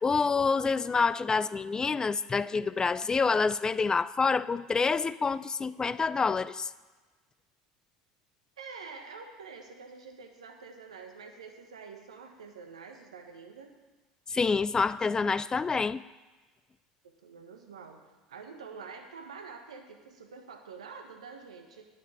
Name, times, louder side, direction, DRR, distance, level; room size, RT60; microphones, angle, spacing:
voice 1, 0.0-6.7 14.3-16.0, left 4 dB, 20° left, 16 dB, 0.3 m, -27 dB
voice 2, 8.6-13.7 17.2-18.0 18.3-21.8, right 5 dB, 80° right, 4 dB, 1.3 m, -47 dB
9.6 x 6.3 x 8.2 m, 1.3 s
hypercardioid pair, 70°, 3 cm